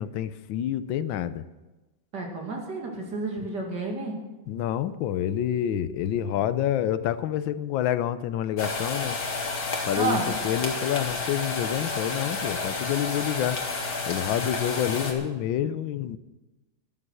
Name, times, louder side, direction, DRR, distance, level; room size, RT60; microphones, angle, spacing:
voice 1, 0.0-1.4 3.4-3.5 4.5-9.2 9.9-13.6 14.1-16.2, left 10 dB, 80° left, 14 dB, 1.4 m, -28 dB
voice 2, 2.1-4.2 10.0-10.4, right 3 dB, 60° right, 1 dB, 2.9 m, -30 dB
sound 1, 8.6-15.1, left 3 dB, 50° left, 2.2 m, -31 dB
12.0 x 11.0 x 6.3 m, 1.1 s
omnidirectional pair, 2.1 m